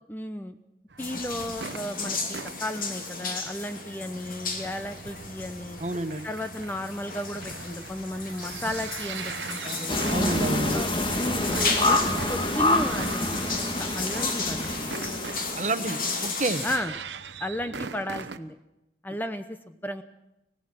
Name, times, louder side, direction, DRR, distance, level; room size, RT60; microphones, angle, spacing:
voice 1, 0.1-0.6 1.0-5.8 6.2-10.1 10.7-10.9 11.2-11.6 11.8-12.0 12.3-13.5 13.8-14.9 16.6-16.9 17.4-18.6 19.0-20.0, equal, 10° left, 9 dB, 0.8 m, -34 dB
sound 1, 0.9-18.4, right 5 dB, 90° right, 1.0 m, -41 dB
sound 2, 1.0-16.8, left 4 dB, 50° left, 2.9 m, -34 dB
voice 2, 5.8-6.3 10.1-10.8 15.6-16.6, right 2 dB, 40° right, 10 dB, 1.1 m, -29 dB
sound 3, 9.9-16.3, left 2 dB, 30° left, 1.7 m, -27 dB
25.0 x 18.0 x 6.1 m, 0.88 s
head